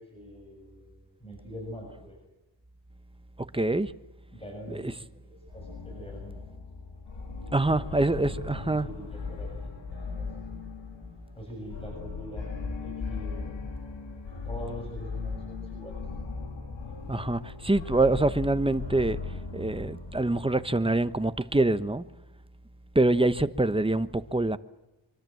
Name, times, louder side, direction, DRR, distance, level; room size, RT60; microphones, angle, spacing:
voice 1, 0.0-2.1 4.3-6.4 7.2-7.8 8.1-10.6 11.4-13.6 14.4-16.0, equal, 10° left, 7.7 m, -44 dB
voice 2, 3.5-3.9 4.7-4.9 7.5-8.9 17.1-19.2 19.5-22.0 22.9-24.6, right 2 dB, 10° right, 1.0 m, -25 dB
sound 1, 5.5-21.2, left 4 dB, 80° left, 3.7 m, -38 dB
24.5 x 24.5 x 7.8 m
wide cardioid pair, 100°, 44 cm